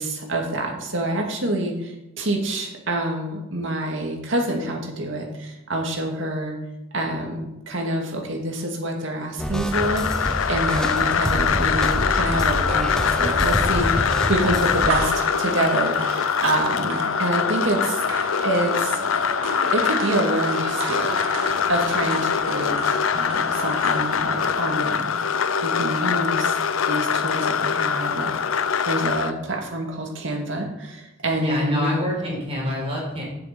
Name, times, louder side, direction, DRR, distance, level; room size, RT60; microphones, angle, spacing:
voice 1, 0.0-6.6 6.9-15.1 15.4-18.1 18.4-19.0 19.7-26.6 26.9-31.9, right 1 dB, 65° right, 1 dB, 2.3 m, -27 dB
sound 1, 9.4-15.1, equal, 5° left, 0.7 m, -27 dB
sound 2, 9.7-29.3, left 7 dB, 85° left, 0.6 m, -23 dB
sound 3, 10.1-25.0, right 3 dB, 80° right, 1.9 m, -34 dB
voice 2, 31.4-33.2, equal, 30° right, -3 dB, 4.4 m, -26 dB
8.0 x 6.9 x 8.4 m, 0.94 s
head